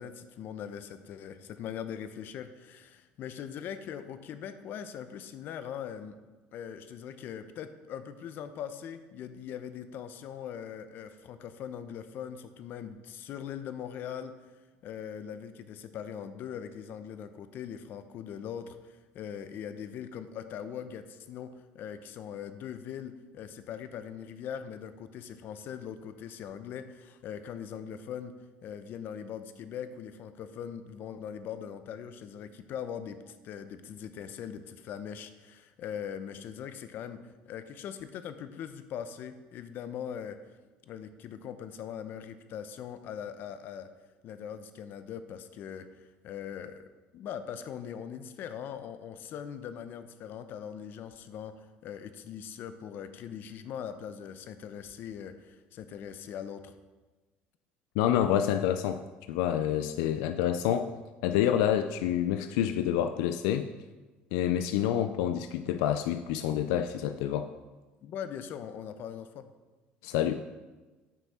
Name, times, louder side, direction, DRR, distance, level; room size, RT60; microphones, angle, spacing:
voice 1, 0.0-6.2 6.5-14.3 14.8-28.3 28.6-37.2 37.5-40.4 40.9-43.9 44.2-46.8 47.1-51.5 51.8-56.7 68.0-69.4, left 8 dB, 55° left, 11 dB, 0.7 m, -41 dB
voice 2, 58.0-59.0 59.3-60.9 61.2-63.7 64.3-67.5 70.0-70.4, left 10 dB, 85° left, 9 dB, 0.4 m, -28 dB
9.3 x 6.0 x 4.2 m, 1.2 s
cardioid pair, 125°, 4 cm